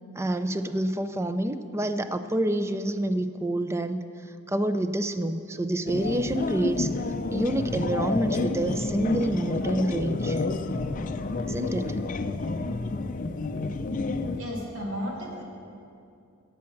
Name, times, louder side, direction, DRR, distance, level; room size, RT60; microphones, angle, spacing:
voice 1, 0.2-4.0 4.5-6.9 7.3-10.4 11.5-12.0, right 1 dB, 15° right, 10 dB, 0.5 m, -27 dB
sound 1, 5.9-14.4, left 3 dB, 40° left, 0.5 m, -29 dB
voice 2, 14.3-15.4, equal, 65° right, -2 dB, 2.5 m, -34 dB
15.5 x 8.5 x 5.8 m, 2.6 s
head